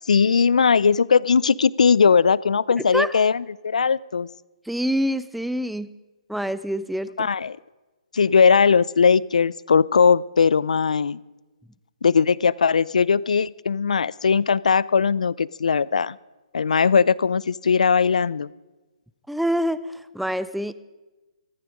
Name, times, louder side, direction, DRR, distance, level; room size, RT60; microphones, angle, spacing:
voice 1, 0.1-4.3 7.2-7.6 8.1-11.2 12.0-16.2 16.5-18.5, left 5 dB, 90° left, 22 dB, 0.4 m, -19 dB
voice 2, 2.8-3.2 4.7-5.9 6.3-7.3 19.3-19.8 20.1-20.7, equal, ahead, 15 dB, 0.3 m, -26 dB
14.0 x 12.0 x 5.1 m, 1.2 s
hypercardioid pair, 155°, 4 cm